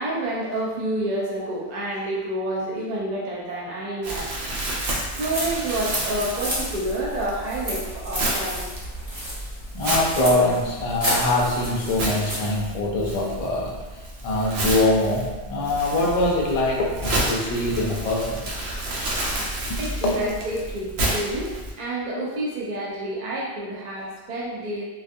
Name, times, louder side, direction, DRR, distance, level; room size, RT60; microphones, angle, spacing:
voice 1, 0.0-4.5 5.2-8.7 19.8-21.5 21.8-24.8, right 1 dB, 55° right, -4 dB, 0.5 m, -29 dB
Crumpling crinkling, 4.0-21.7, right 1 dB, 85° right, 0.9 m, -31 dB
sound 1, 5.3-12.5, equal, 35° right, 1.1 m, -32 dB
voice 2, 9.7-13.8 14.2-18.4 19.7-19.8 20.0-20.2, left 2 dB, 50° left, -2 dB, 0.4 m, -23 dB
2.3 x 2.3 x 2.6 m, 1.2 s
omnidirectional pair, 1.1 m